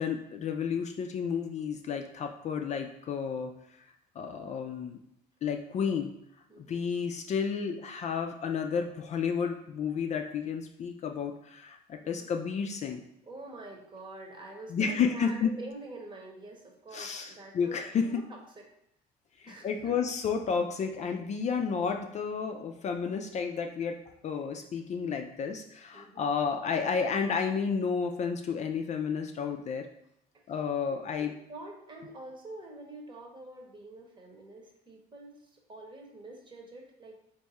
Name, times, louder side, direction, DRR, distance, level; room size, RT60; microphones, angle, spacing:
voice 1, 0.0-3.5 3.8-3.9 4.2-5.0 5.4-6.1 6.6-13.0 14.7-15.5 16.9-18.1 19.4-29.9 30.5-31.3, left 6 dB, 45° left, 4 dB, 0.4 m, -31 dB
voice 2, 6.5-6.9 12.0-12.3 13.3-17.8 18.1-18.4 19.5-19.9 25.9-26.3 30.3-30.4 30.9-37.3, right 2 dB, 30° right, 1 dB, 1.0 m, -46 dB
3.5 x 2.6 x 4.1 m, 0.79 s
cardioid pair, 110°, 17 cm